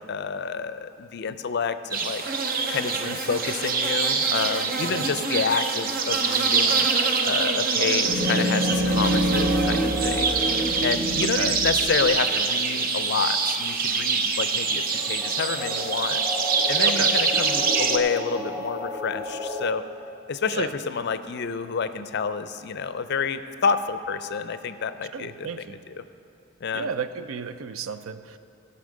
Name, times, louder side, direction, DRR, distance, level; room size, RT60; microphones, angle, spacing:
voice 1, 0.0-2.2 2.7-6.9 7.2-10.4 10.8-16.2 16.7-19.8 20.3-26.0 26.6-26.9, left 5 dB, 55° left, 12 dB, 0.4 m, -29 dB
sound 1, 1.9-18.0, right 5 dB, 45° right, 0.6 m, -25 dB
sound 2, 8.1-12.4 14.4-14.5 14.9-19.7, equal, 15° right, 1.1 m, -28 dB
voice 2, 16.8-17.2 20.5-20.7 25.1-25.8 26.7-28.4, right 5 dB, 80° right, 12 dB, 0.5 m, -32 dB
16.0 x 5.6 x 6.3 m, 2.9 s
head